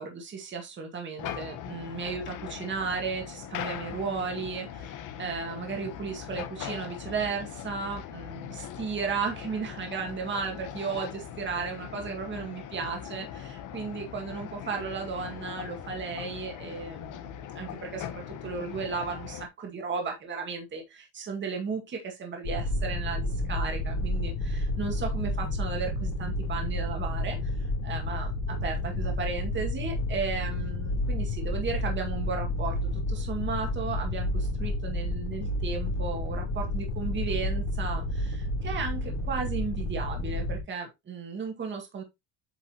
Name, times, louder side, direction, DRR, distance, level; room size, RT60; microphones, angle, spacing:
voice 1, 0.0-27.5 27.8-42.0, right 5 dB, 25° right, 2.0 m, -35 dB
sound 1, 1.2-19.5, left 9 dB, 40° left, 1.1 m, -40 dB
sound 2, 22.4-40.6, left 1 dB, 65° left, 3.4 m, -30 dB
8.6 x 5.3 x 2.9 m
cardioid pair, 170°, 47 cm